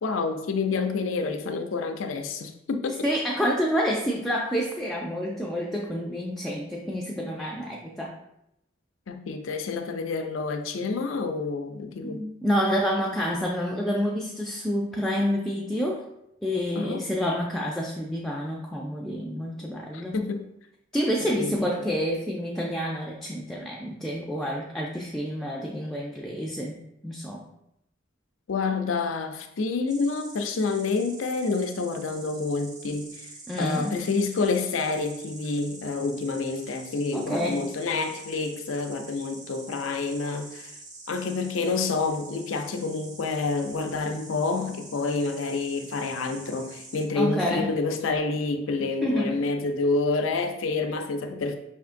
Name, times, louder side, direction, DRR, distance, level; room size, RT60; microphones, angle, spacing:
voice 1, 0.0-3.1 9.1-12.2 16.7-17.1 19.9-20.4 21.3-21.6 28.5-33.3 33.6-40.7 41.1-51.6, left 4 dB, 90° left, 6 dB, 0.5 m, -28 dB
voice 2, 3.0-8.2 12.0-16.0 16.4-20.2 20.9-26.8 27.0-27.4 33.5-34.0 37.1-37.6 47.2-47.7 49.0-49.4, equal, ahead, -2 dB, 0.3 m, -28 dB
Insect, 29.9-47.0, right 3 dB, 40° right, 0.8 m, -46 dB
5.1 x 3.6 x 2.5 m, 0.82 s
head